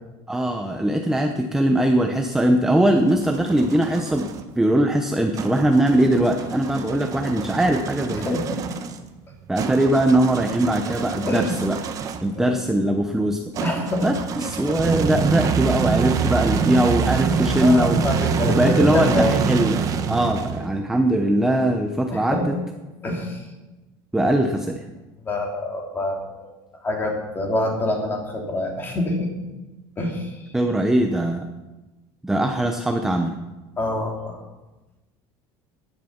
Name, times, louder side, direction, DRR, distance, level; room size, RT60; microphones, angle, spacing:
voice 1, 0.3-8.4 9.5-11.8 12.2-13.4 14.0-18.0 18.5-22.5 24.1-24.8 30.5-31.5 32.2-33.4, right 1 dB, 5° right, 4 dB, 0.8 m, -21 dB
sound 1, 2.6-4.4 5.4-12.4 13.5-20.8, right 6 dB, 30° right, 1.1 m, -26 dB
voice 2, 8.1-8.6 11.2-11.5 12.3-12.5 13.6-14.1 14.7-14.8 17.6-19.3 22.1-22.5 23.0-23.5 24.2-24.3 25.2-26.5 26.8-29.3 30.0-30.4 33.8-34.4, left 1 dB, 20° left, 1 dB, 2.8 m, -26 dB
15.0 x 11.0 x 5.8 m, 1.1 s
cardioid pair, 165°, 11 cm